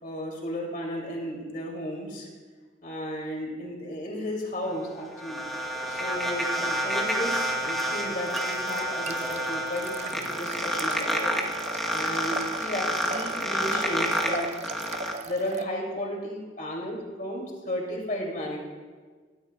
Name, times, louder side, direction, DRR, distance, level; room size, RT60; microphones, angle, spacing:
voice 1, 0.0-2.3 2.8-5.4 5.9-14.5 15.3-18.6, left 1 dB, 50° left, -1 dB, 2.7 m, -34 dB
sound 1, 4.7-15.1, equal, ahead, 1.1 m, -29 dB
sound 2, 7.8-15.6, right 4 dB, 40° right, 0.4 m, -40 dB
17.5 x 12.5 x 2.3 m, 1.5 s
head